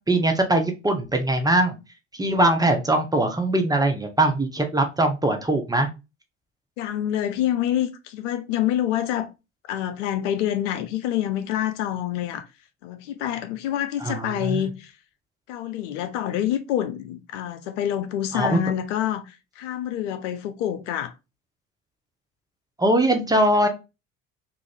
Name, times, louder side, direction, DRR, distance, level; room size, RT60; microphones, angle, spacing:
voice 1, 0.1-1.8 2.2-5.9 14.0-14.6 18.3-18.6 22.8-23.7, right 1 dB, 10° right, 0.6 m, -21 dB
voice 2, 6.8-9.3 9.7-12.5 12.8-14.9 15.5-21.1, left 11 dB, 70° left, 0.6 m, -27 dB
3.2 x 2.5 x 3.3 m
hypercardioid pair, 65°, 38 cm